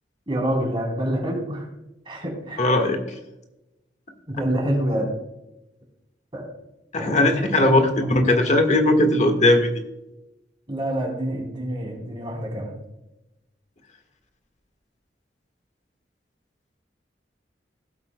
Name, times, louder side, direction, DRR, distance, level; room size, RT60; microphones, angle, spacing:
voice 1, 0.3-1.7 2.1-2.9 4.3-5.1 6.3-6.5 7.0-8.4 10.7-12.7, right 1 dB, 30° right, -1 dB, 3.6 m, -27 dB
voice 2, 2.6-3.0 6.9-9.7, left 1 dB, 45° left, 6 dB, 1.5 m, -18 dB
17.0 x 8.2 x 2.2 m, 0.94 s
head